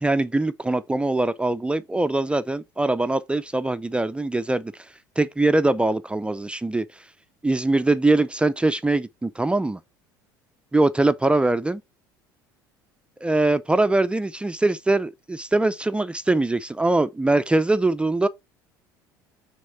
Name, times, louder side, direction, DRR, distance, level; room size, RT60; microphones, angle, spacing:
voice 1, 0.0-4.7 5.2-6.8 7.4-9.8 10.7-11.8 13.2-18.3, right 2 dB, 10° right, 0.5 m, -22 dB
6.2 x 3.6 x 5.7 m
hypercardioid pair, 70°, 11 cm